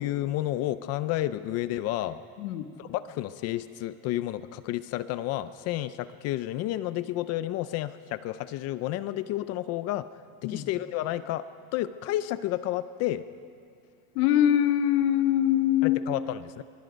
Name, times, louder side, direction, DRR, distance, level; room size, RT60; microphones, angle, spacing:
voice 1, 0.0-2.2 2.8-10.1 10.4-11.5 11.7-13.2 15.8-16.6, left 14 dB, 40° left, 14 dB, 0.4 m, -31 dB
voice 2, 2.4-2.7 10.4-10.7 14.1-16.0, left 11 dB, 90° left, 8 dB, 1.5 m, -23 dB
24.0 x 23.5 x 5.2 m, 2.3 s
cardioid pair, 165°, 42 cm